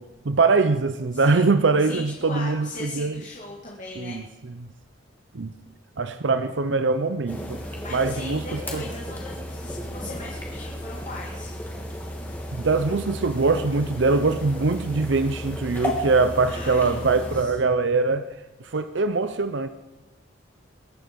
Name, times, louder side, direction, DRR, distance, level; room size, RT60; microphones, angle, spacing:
voice 1, 0.0-3.2 4.0-4.2 4.6-4.7 5.3-5.5 6.0-7.6 7.9-8.8 12.5-18.3 18.6-19.7, right 3 dB, 70° right, 11 dB, 0.7 m, -23 dB
voice 2, 1.1-1.5 1.8-4.2 7.8-11.5 16.4-17.5, left 2 dB, 40° left, -3 dB, 2.2 m, -38 dB
sound 1, 7.3-17.4, equal, 10° left, 2.7 m, -34 dB
22.5 x 11.0 x 5.3 m, 1.1 s
head